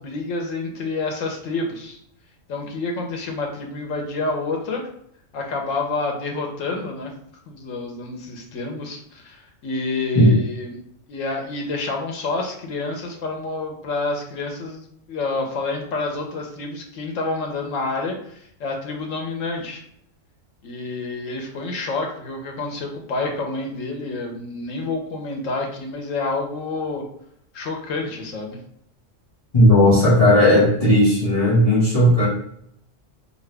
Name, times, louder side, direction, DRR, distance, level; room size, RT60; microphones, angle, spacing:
voice 1, 0.0-2.0 2.5-4.9 5.3-7.1 7.5-10.8 11.1-19.8 20.6-27.1 27.5-28.6, left 3 dB, 90° left, 2 dB, 1.2 m, -28 dB
voice 2, 29.5-32.3, left 1 dB, 30° left, -11 dB, 1.7 m, -15 dB
3.8 x 3.0 x 3.3 m, 0.68 s
omnidirectional pair, 1.3 m